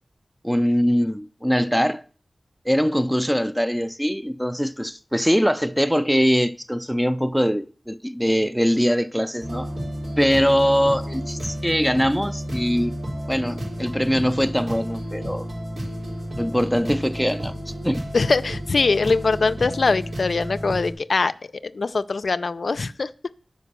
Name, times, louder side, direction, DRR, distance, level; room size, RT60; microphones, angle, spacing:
voice 1, 0.4-2.0 2.7-9.7 10.2-13.0 13.3-15.5 16.4-17.5 17.8-18.0, equal, 5° right, 0.6 m, -22 dB
sound 1, 9.4-20.9, equal, 90° right, 3.7 m, -31 dB
voice 2, 18.1-21.3 21.6-23.1, left 4 dB, 85° left, 0.4 m, -22 dB
10.0 x 5.2 x 6.8 m
cardioid pair, 45°, 0 cm